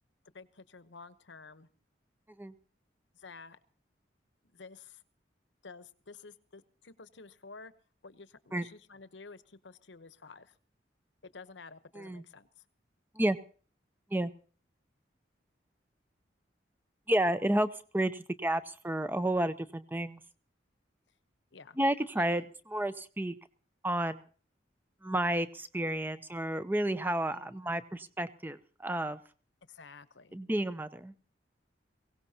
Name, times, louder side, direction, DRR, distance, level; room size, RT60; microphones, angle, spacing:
voice 1, 0.3-1.7 3.1-3.6 4.4-5.0 5.6-7.7 8.0-10.6 11.2-12.6 21.5-21.8 22.1-22.5 27.3-27.6 29.7-30.4, left 4 dB, 80° left, 13 dB, 1.0 m, -51 dB
voice 2, 17.1-20.2 21.8-23.4 23.8-24.2 25.0-29.2 30.3-31.2, right 1 dB, 10° right, 13 dB, 0.6 m, -31 dB
23.0 x 17.0 x 2.8 m, 0.41 s
head